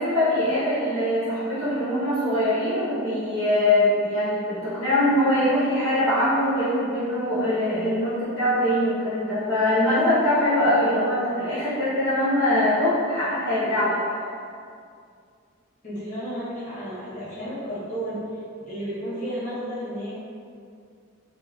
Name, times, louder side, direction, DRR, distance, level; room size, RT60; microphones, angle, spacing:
voice 1, 0.0-14.0, left 1 dB, 65° left, -12 dB, 1.1 m, -22 dB
voice 2, 15.8-20.1, equal, 35° left, -11 dB, 1.0 m, -32 dB
3.6 x 2.6 x 2.4 m, 2.3 s
head